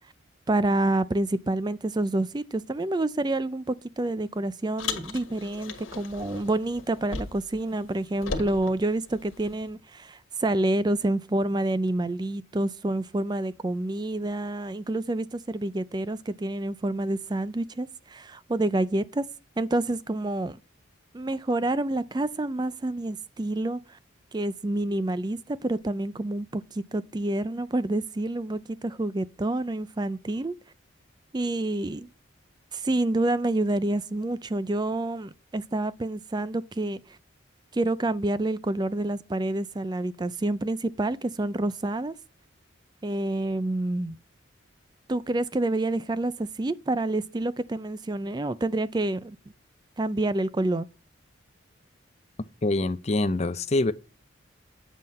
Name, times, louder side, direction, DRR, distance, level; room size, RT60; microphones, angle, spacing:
voice 1, 0.5-19.2 19.6-20.6 21.1-24.0 24.3-30.5 31.3-32.1 32.7-37.0 37.7-42.1 43.0-44.2 45.1-49.4 50.0-50.9, right 2 dB, 20° right, 0.4 m, -28 dB
Car, 4.8-7.6 7.8-9.7, left 4 dB, 80° left, 1.6 m, -37 dB
voice 2, 52.6-53.9, left 2 dB, 30° left, 0.5 m, -25 dB
9.1 x 7.7 x 4.2 m
head